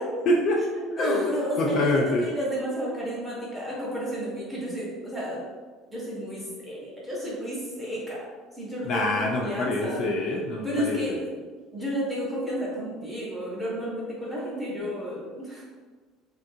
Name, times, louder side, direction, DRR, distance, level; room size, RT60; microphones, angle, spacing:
voice 1, 0.3-0.6 1.0-2.3 8.8-11.2, left 1 dB, 40° left, -1 dB, 0.3 m, -25 dB
voice 2, 0.9-5.4 5.9-8.2 8.6-10.0 10.6-11.3 11.7-15.6, equal, 5° right, -6 dB, 0.8 m, -32 dB
3.6 x 2.3 x 2.6 m, 1.4 s
cardioid pair, 170°, 0 cm